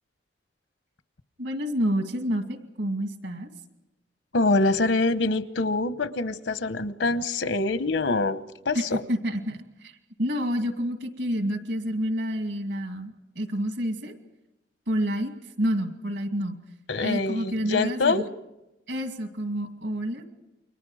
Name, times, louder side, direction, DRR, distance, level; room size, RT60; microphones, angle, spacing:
voice 1, 1.4-3.5 8.7-9.9 10.2-14.2 14.9-15.3 15.6-16.6 17.0-18.2 18.9-20.2, equal, 75° right, 6 dB, 2.4 m, -28 dB
voice 2, 4.3-9.0 16.9-18.2, left 3 dB, 80° left, 12 dB, 1.0 m, -25 dB
29.5 x 23.5 x 4.9 m, 0.92 s
head